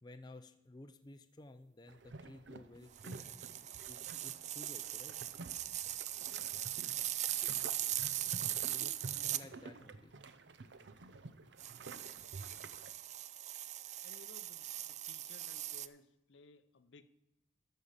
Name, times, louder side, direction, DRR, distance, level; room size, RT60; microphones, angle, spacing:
voice 1, 0.0-5.2 8.6-10.1, left 2 dB, 20° left, 0.5 m, -55 dB
sound 1, 1.9-12.9, right 3 dB, 70° right, 0.6 m, -51 dB
sound 2, 3.0-9.4 11.6-15.9, right 13 dB, 40° right, 0.3 m, -40 dB
voice 2, 6.2-7.2 7.9-8.0 14.0-17.0, left 3 dB, 80° left, 0.6 m, -60 dB
13.0 x 5.4 x 6.6 m
head